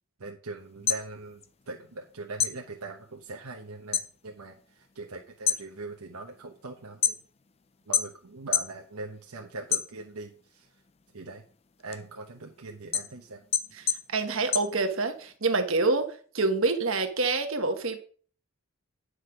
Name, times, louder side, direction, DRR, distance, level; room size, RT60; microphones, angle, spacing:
voice 1, 0.2-7.2 7.9-10.8 11.1-11.4 11.8-13.4, right 3 dB, 80° right, 2 dB, 1.0 m, -41 dB
sound 1, 0.7-2.1 2.4-4.1 4.5-4.9 5.3-7.5 7.9-8.8 9.2-10.4 10.8-15.3, left 8 dB, 25° left, 0.5 m, -30 dB
voice 2, 13.8-18.0, right 3 dB, 60° right, 6 dB, 1.3 m, -27 dB
9.9 x 6.4 x 5.0 m, 0.43 s
head